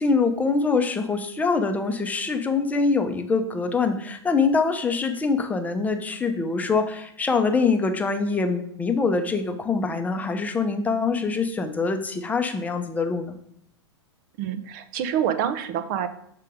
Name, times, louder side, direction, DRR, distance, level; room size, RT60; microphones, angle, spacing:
voice 1, 0.0-13.3, left 4 dB, 10° left, 6 dB, 0.7 m, -24 dB
voice 2, 14.4-16.1, right 9 dB, 40° right, 10 dB, 0.6 m, -26 dB
6.6 x 3.7 x 5.0 m, 0.70 s
figure-of-eight pair, 100°, 15 cm